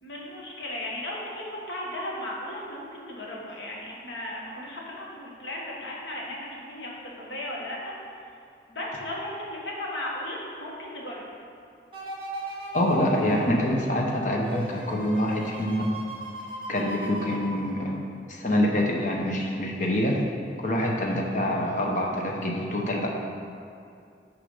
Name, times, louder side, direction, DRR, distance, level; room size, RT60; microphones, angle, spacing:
voice 1, 0.0-7.9 8.7-11.3 21.0-21.2, left 1 dB, 85° left, -4 dB, 1.5 m, -36 dB
sound 1, 11.9-18.2 18.6-18.7, right 1 dB, 30° right, 1.0 m, -38 dB
voice 2, 12.7-15.9 16.7-18.0 18.3-20.2 20.6-23.1, left 1 dB, 45° left, -1 dB, 0.9 m, -25 dB
6.3 x 4.9 x 5.5 m, 2.4 s
head